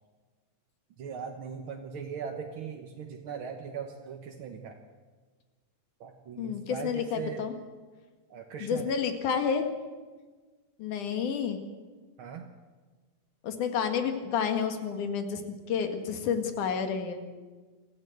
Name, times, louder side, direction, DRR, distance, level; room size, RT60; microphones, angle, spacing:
voice 1, 1.0-4.8 6.0-7.4 8.3-8.9 12.2-12.4, right 6 dB, 55° right, 3 dB, 1.5 m, -39 dB
voice 2, 6.4-7.6 8.6-9.7 10.8-11.6 13.4-15.4 15.7-17.2, left 7 dB, 75° left, 7 dB, 3.2 m, -30 dB
24.5 x 14.5 x 7.9 m, 1.4 s
omnidirectional pair, 3.6 m